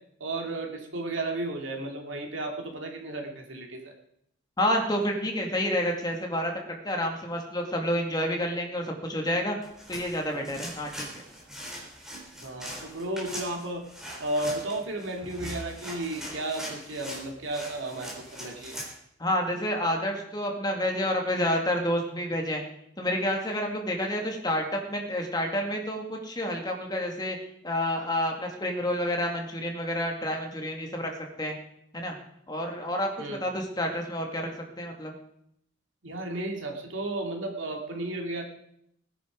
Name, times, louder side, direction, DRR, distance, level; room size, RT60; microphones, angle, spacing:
voice 1, 0.2-3.9 12.4-13.8 14.2-18.8 33.2-33.4 36.0-38.4, right 2 dB, 75° right, 2 dB, 2.7 m, -33 dB
voice 2, 4.6-9.6 9.9-11.1 19.2-22.6 23.0-27.4 27.6-31.1 31.4-31.6 31.9-32.2 32.5-34.5 34.8-35.1, equal, 20° left, 1 dB, 2.3 m, -29 dB
sound 1, 9.6-18.9, equal, 5° right, 3.8 m, -41 dB
19.0 x 10.0 x 5.3 m, 0.74 s
head